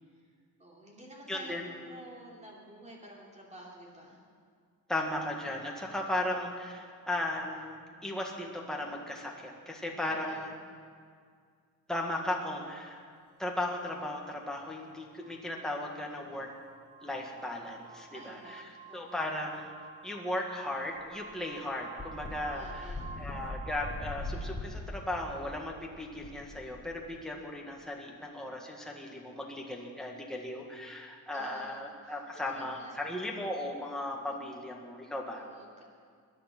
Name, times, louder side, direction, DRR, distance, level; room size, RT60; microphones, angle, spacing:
voice 1, 0.6-4.2 10.0-10.6 18.1-19.2 22.5-23.1 31.3-32.2 32.5-33.0 35.3-35.9, right 1 dB, 20° right, -3 dB, 3.1 m, -50 dB
voice 2, 1.3-1.7 4.9-7.7 8.0-10.5 11.9-13.0 13.4-16.5 17.0-18.6 18.9-19.7 20.0-22.9 23.2-35.5, left 1 dB, ahead, -1 dB, 1.7 m, -36 dB
sound 1, 9.8-10.3 12.6-12.7 13.6-24.0, right 6 dB, 35° right, 1.9 m, -51 dB
sound 2, 21.0-21.1 21.3-21.4 22.0-27.2, left 2 dB, 15° left, 3.2 m, -41 dB
21.5 x 10.5 x 6.0 m, 2.1 s
wide cardioid pair, 155°, 36 cm